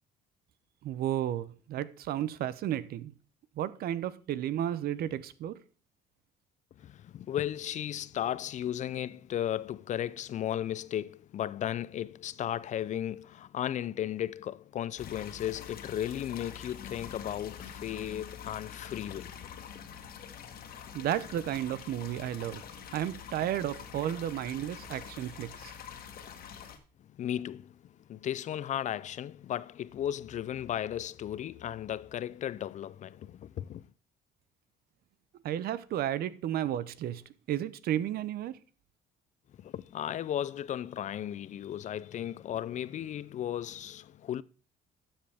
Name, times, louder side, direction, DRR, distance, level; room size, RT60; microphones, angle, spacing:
voice 1, 0.8-3.1 3.6-5.6 20.9-22.6 22.9-25.7 35.4-37.2 37.5-38.6, right 11 dB, 65° right, 0.7 m, -33 dB
voice 2, 6.8-19.5 27.0-33.8 39.6-44.4, left 11 dB, 45° left, 0.4 m, -35 dB
sound 1, 15.0-26.8, left 8 dB, 60° left, 1.6 m, -46 dB
12.5 x 7.2 x 3.5 m
cardioid pair, 110°, 17 cm